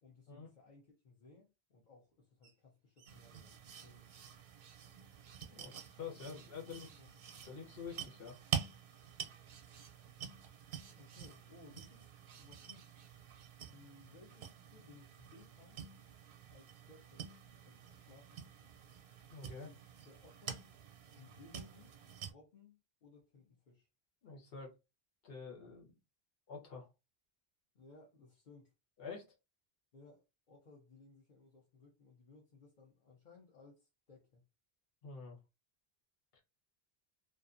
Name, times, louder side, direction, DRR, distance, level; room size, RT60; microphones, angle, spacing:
voice 1, 0.0-4.1 6.2-7.1 10.9-13.1 13.7-15.8 16.5-17.3 17.6-18.4 19.5-20.6 21.1-21.9 22.2-23.9 27.7-28.7 29.9-34.4, left 3 dB, 50° left, 0.8 m, -61 dB
Parrots Lorikeets, 2.4-2.5 3.0-4.3 4.6-4.8 5.2-5.9 6.3-6.5 6.8-7.5 7.9-8.1 9.5-10.0 10.7-11.3 12.3-13.5, right 6 dB, 55° right, 0.5 m, -64 dB
sound 1, 3.1-22.3, right 7 dB, 80° right, 0.9 m, -48 dB
voice 2, 6.0-6.9 7.4-8.4 19.3-19.7 24.2-24.7 25.2-25.9 26.5-26.9 29.0-29.2 35.0-35.4 36.3-36.4, left 5 dB, 70° left, 1.1 m, -47 dB
2.5 x 2.4 x 2.5 m
omnidirectional pair, 1.0 m